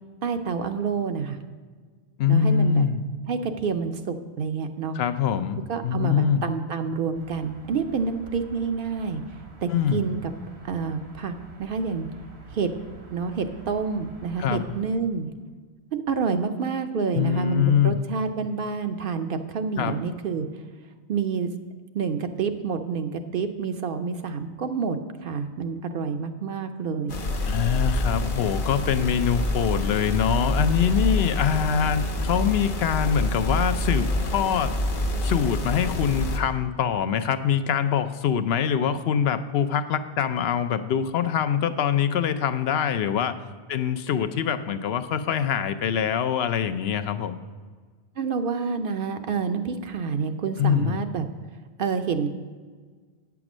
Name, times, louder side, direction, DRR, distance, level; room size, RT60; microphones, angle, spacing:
voice 1, 0.2-1.4 2.3-2.8 3.3-5.0 5.7-9.2 9.6-10.3 10.6-12.1 12.5-12.7 13.1-15.3 15.9-20.5 21.1-21.5 21.9-27.2 48.2-51.2 51.8-52.3, right 5 dB, 60° right, 7 dB, 0.7 m, -28 dB
voice 2, 2.2-3.0 4.9-6.4 9.7-10.0 14.4-14.6 17.1-18.0 19.8-20.0 27.4-34.7 35.2-43.3 43.7-47.4 50.6-51.0, left 8 dB, 70° left, 10 dB, 0.8 m, -24 dB
sound 1, 7.1-14.8, right 4 dB, 75° right, 1.6 m, -47 dB
sound 2, 27.1-36.4, left 1 dB, 55° left, 1.0 m, -27 dB
8.8 x 6.0 x 6.1 m, 1.5 s
omnidirectional pair, 1.1 m